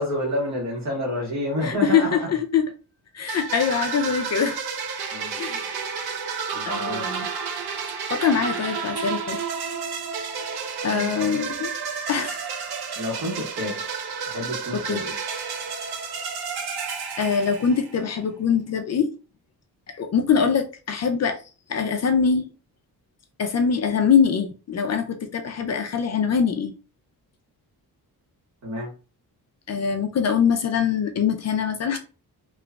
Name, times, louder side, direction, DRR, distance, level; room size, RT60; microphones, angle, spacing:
voice 1, 0.0-2.3 5.1-5.3 6.5-7.0 10.9-11.2 12.9-13.8 14.2-15.2 28.6-28.9, left 1 dB, 45° right, 1.6 m, -29 dB
voice 2, 1.6-2.7 3.1-4.6 5.4-5.6 6.6-7.3 8.1-9.4 10.8-11.7 12.1-12.5 14.9-15.0 17.2-19.1 19.9-21.4 21.7-22.5 23.4-26.7 29.7-32.0, left 6 dB, 45° left, 0.5 m, -23 dB
sound 1, 3.3-18.1, right 6 dB, 90° right, 0.7 m, -31 dB
2.9 x 2.4 x 3.2 m
cardioid pair, 115°, 37 cm